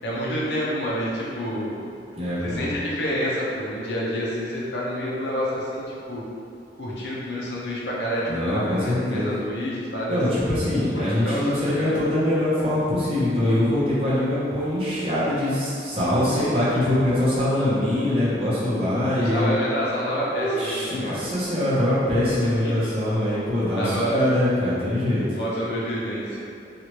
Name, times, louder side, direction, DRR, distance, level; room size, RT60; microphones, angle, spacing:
voice 1, 0.0-1.8 2.4-6.2 6.8-10.4 10.9-12.0 16.0-16.7 19.1-21.2 22.6-22.9 23.8-24.3 25.3-26.4, equal, 75° left, -6 dB, 0.7 m, -28 dB
voice 2, 2.2-2.7 8.3-9.2 10.1-19.5 20.4-25.2, left 1 dB, 30° right, -9 dB, 0.8 m, -23 dB
3.0 x 2.4 x 3.0 m, 2.6 s
head